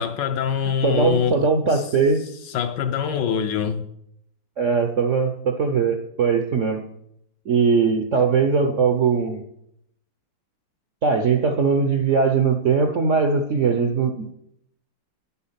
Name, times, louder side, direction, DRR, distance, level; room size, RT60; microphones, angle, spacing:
voice 1, 0.0-1.8 2.5-3.8, left 7 dB, 65° left, 1.2 m, -24 dB
voice 2, 0.8-2.3 4.6-6.8 7.5-9.4 11.0-14.3, right 5 dB, 60° right, 0.8 m, -20 dB
9.6 x 8.5 x 5.7 m
omnidirectional pair, 2.3 m